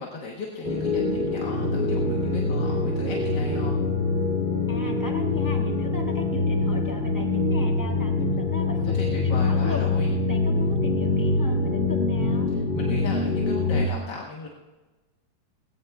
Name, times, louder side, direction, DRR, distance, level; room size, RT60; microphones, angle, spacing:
voice 1, 0.0-3.8 8.7-10.1 12.5-14.5, left 4 dB, 60° left, -1 dB, 1.8 m, -37 dB
sound 1, 0.6-13.9, left 3 dB, 30° left, 1.4 m, -24 dB
voice 2, 4.7-9.8 10.3-12.5, left 2 dB, 10° left, 0 dB, 1.6 m, -37 dB
19.0 x 17.0 x 2.3 m, 1.2 s
omnidirectional pair, 2.1 m